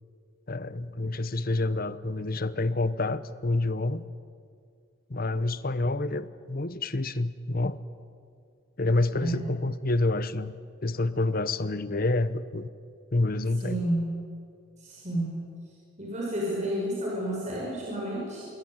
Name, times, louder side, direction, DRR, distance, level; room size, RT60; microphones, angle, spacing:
voice 1, 0.5-4.0 5.1-7.8 8.8-10.5 10.8-12.7 13.1-13.8, left 2 dB, 45° left, 14 dB, 1.0 m, -28 dB
voice 2, 13.6-14.2 14.8-15.4 16.0-18.5, right 1 dB, 35° right, -3 dB, 6.0 m, -31 dB
27.0 x 21.5 x 9.1 m, 2.3 s
head